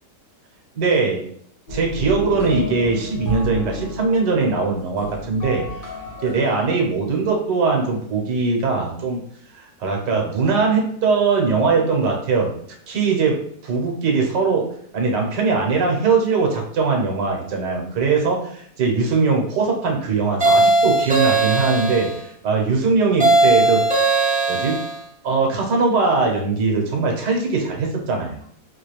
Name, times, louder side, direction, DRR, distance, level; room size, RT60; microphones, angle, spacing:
voice 1, 0.7-1.2 1.7-5.6 6.2-9.2 9.5-12.5 12.9-14.6 14.9-23.8 24.5-24.8 25.2-28.4, right 4 dB, 80° right, 0 dB, 1.5 m, -21 dB
sound 1, 1.7-6.6, left 1 dB, 35° left, 0.9 m, -31 dB
sound 2, 20.4-22.2 23.2-25.0, right 2 dB, 10° right, 0.4 m, -18 dB
4.3 x 2.4 x 3.1 m, 0.66 s
omnidirectional pair, 1.8 m